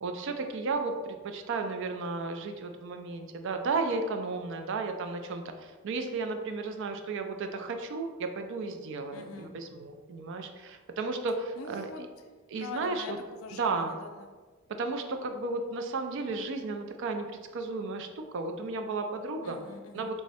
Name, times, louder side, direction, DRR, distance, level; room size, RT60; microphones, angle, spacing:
voice 1, 0.0-12.1 12.5-13.2 13.5-14.0 14.7-17.3 17.5-19.6 19.9-20.2, right 3 dB, 65° right, 6 dB, 0.4 m, -34 dB
voice 2, 9.1-9.5 11.6-12.1 12.6-14.3 19.4-20.1, left 4 dB, 80° left, 3 dB, 0.4 m, -44 dB
3.5 x 2.1 x 4.0 m, 1.4 s
head